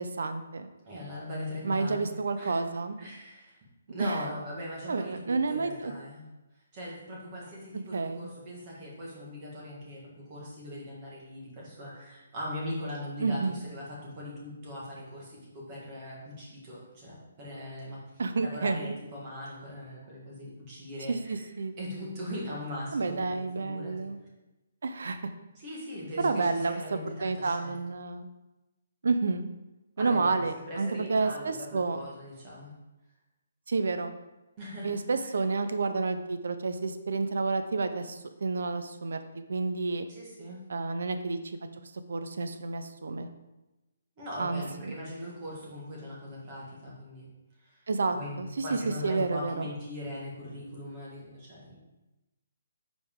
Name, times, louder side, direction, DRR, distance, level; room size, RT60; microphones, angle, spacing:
voice 1, 0.0-0.7 1.6-3.0 4.0-4.2 4.9-5.9 7.9-8.3 13.2-13.6 18.2-19.0 21.1-21.7 22.9-24.2 24.8-25.2 26.2-28.3 29.0-29.4 30.0-32.0 33.7-34.1 34.8-40.1 40.7-43.3 44.4-44.9 47.9-49.7, right 3 dB, 70° right, 9 dB, 0.6 m, -30 dB
voice 2, 0.8-2.1 2.4-2.5 3.0-3.6 3.9-6.2 6.7-18.0 18.4-21.5 21.8-24.1 25.5-27.8 30.0-32.7 34.6-35.3 40.1-40.6 44.2-47.3 47.6-47.8 48.1-51.8, left 1 dB, 20° right, -5 dB, 1.7 m, -40 dB
7.9 x 5.2 x 3.7 m, 1.0 s
hypercardioid pair, 180°, 0 cm